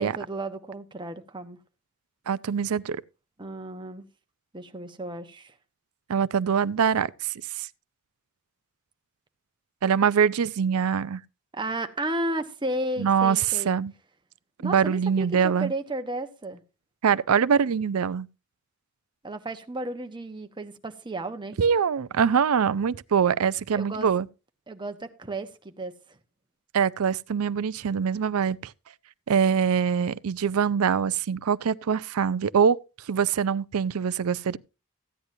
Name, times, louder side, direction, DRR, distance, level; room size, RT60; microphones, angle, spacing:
voice 1, 0.0-1.6 3.4-4.0 4.5-5.5 11.5-13.7 14.6-16.6 19.2-21.6 23.8-24.3 24.7-25.9, right 1 dB, 20° right, 1.1 m, -33 dB
voice 2, 2.3-3.0 6.1-7.7 9.8-11.2 13.0-13.9 14.6-15.7 17.0-18.3 21.6-24.3 26.7-28.7 29.3-32.8 33.1-34.6, right 7 dB, 85° right, 0.5 m, -24 dB
15.0 x 9.7 x 2.7 m
head